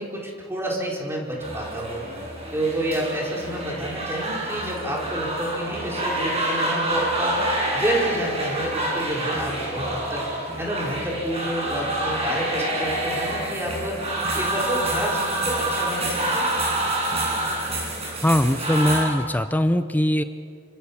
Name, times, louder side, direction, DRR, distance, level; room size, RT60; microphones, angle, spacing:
voice 1, 0.0-2.0 2.5-10.2 10.6-14.0 14.3-16.5, right 1 dB, 10° right, -2 dB, 4.6 m, -29 dB
sound 1, 1.4-19.0, right 1 dB, 30° right, 7.9 m, -27 dB
voice 2, 18.2-20.2, left 1 dB, 10° left, 10 dB, 0.6 m, -21 dB
28.0 x 25.0 x 7.1 m, 2.2 s
head